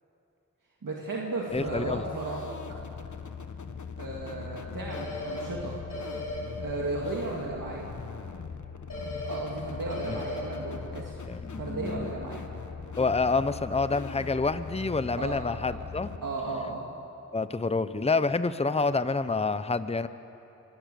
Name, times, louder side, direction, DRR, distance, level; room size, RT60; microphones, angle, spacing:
voice 1, 0.8-2.5 4.0-5.8 6.6-7.9 9.3-11.1 11.5-12.4 15.2-15.4 16.2-16.8, right 2 dB, 85° right, -2 dB, 2.1 m, -34 dB
voice 2, 1.5-2.1 10.1-10.2 11.2-12.1 13.0-16.1 17.3-20.1, left 3 dB, 20° left, 13 dB, 0.7 m, -28 dB
sound 1, 1.7-16.2, left 5 dB, 65° left, 1.2 m, -40 dB
sound 2, 4.9-5.4 5.9-6.4 8.9-9.4 9.9-10.4, left 1 dB, 80° left, 5.8 m, -36 dB
25.5 x 18.0 x 6.8 m, 3.0 s
wide cardioid pair, 45°, 32 cm